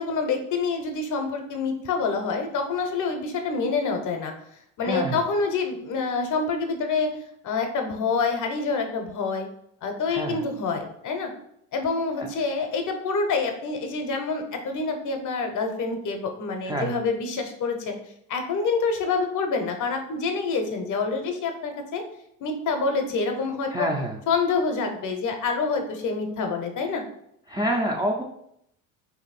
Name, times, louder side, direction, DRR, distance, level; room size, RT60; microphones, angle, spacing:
voice 1, 0.0-4.3 4.8-7.1 7.4-9.5 9.8-11.3 11.7-18.0 18.3-22.0 22.4-23.9 24.3-27.0, left 4 dB, 45° left, 5 dB, 0.8 m, -27 dB
voice 2, 4.8-5.2 10.1-10.4 12.2-12.3 16.6-17.0 23.7-24.2 27.5-28.2, right 1 dB, 10° right, -1 dB, 0.5 m, -27 dB
2.9 x 2.7 x 4.1 m, 0.73 s
supercardioid pair, 80°, 41 cm